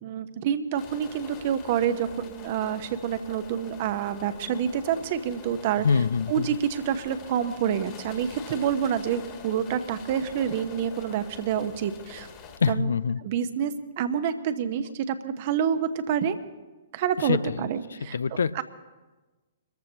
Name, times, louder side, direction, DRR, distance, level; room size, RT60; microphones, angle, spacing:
voice 1, 0.0-5.9 6.3-12.3 12.7-12.9 13.2-16.4 16.9-18.6, right 8 dB, 45° right, 11 dB, 1.0 m, -28 dB
sound 1, 0.7-12.6, left 6 dB, 30° left, 1.9 m, -45 dB
voice 2, 5.8-6.5 12.6-13.2 17.2-17.7 18.1-18.6, left 5 dB, 70° left, 18 dB, 0.4 m, -25 dB
24.0 x 14.0 x 2.9 m, 1.2 s
figure-of-eight pair, 120°, 0 cm